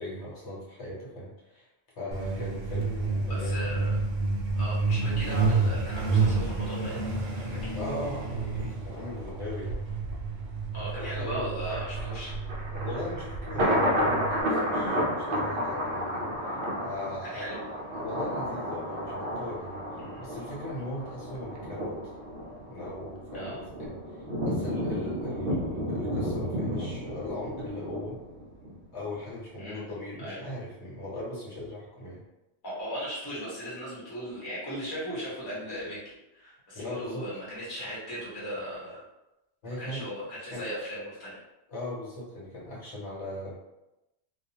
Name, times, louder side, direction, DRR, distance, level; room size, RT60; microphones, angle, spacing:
voice 1, 0.0-1.7 2.0-3.7 7.7-9.8 10.8-11.6 12.7-16.3 16.8-17.5 17.9-22.0 22.7-23.9 24.4-28.2 28.9-32.2 36.7-37.3 39.6-40.1 40.5-40.7 41.7-43.5, left 1 dB, 65° left, -7 dB, 1.1 m, -39 dB
Truck, 2.1-14.4, right 3 dB, 85° right, 0.9 m, -30 dB
voice 2, 3.3-4.0 4.6-7.0 7.4-7.7 10.7-12.3 17.2-17.6 20.0-20.2 23.3-23.6 29.6-29.8 30.2-30.4 32.6-39.0 39.8-41.4, equal, 20° left, -7 dB, 0.8 m, -37 dB
Thunder, 11.7-28.8 29.1-29.2, equal, 60° right, 0.6 m, -32 dB
2.3 x 2.2 x 2.8 m, 0.94 s
omnidirectional pair, 1.3 m